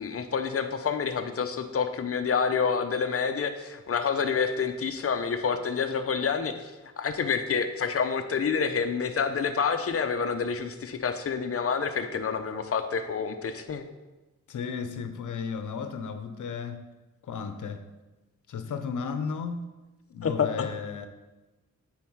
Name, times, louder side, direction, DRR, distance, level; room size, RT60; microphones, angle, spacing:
voice 1, 0.0-6.7 7.0-13.8 20.2-20.7, left 6 dB, 50° left, 0.8 m, -28 dB
voice 2, 14.5-16.9 17.2-17.9 18.5-19.8 20.1-21.1, left 5 dB, 85° left, 0.8 m, -34 dB
9.3 x 4.4 x 4.7 m
wide cardioid pair, 90°, 30 cm